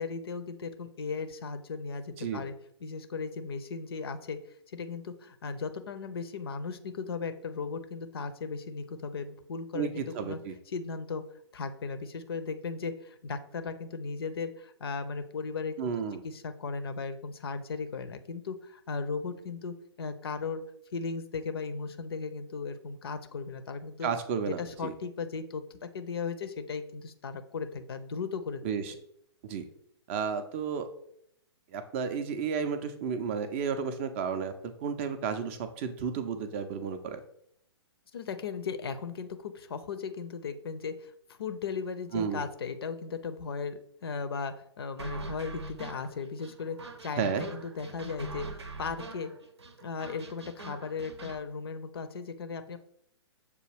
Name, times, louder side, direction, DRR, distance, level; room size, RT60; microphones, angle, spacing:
voice 1, 0.0-2.5 2.8-4.4 4.7-10.4 10.7-11.2 11.5-20.6 20.9-24.1 24.5-28.6 28.9-29.0 38.1-48.5 48.8-49.3 49.8-52.8, left 5 dB, 60° left, 10 dB, 0.5 m, -37 dB
voice 2, 9.7-10.5 15.8-16.2 24.0-24.9 28.6-28.9 29.4-29.6 30.1-30.9 31.7-34.5 34.8-37.2 42.1-42.4 47.2-47.5, right 6 dB, 25° right, 9 dB, 0.3 m, -32 dB
sound 1, 45.0-51.4, right 2 dB, 70° right, 0.6 m, -43 dB
6.7 x 2.3 x 3.2 m, 0.71 s
figure-of-eight pair, 120°, 14 cm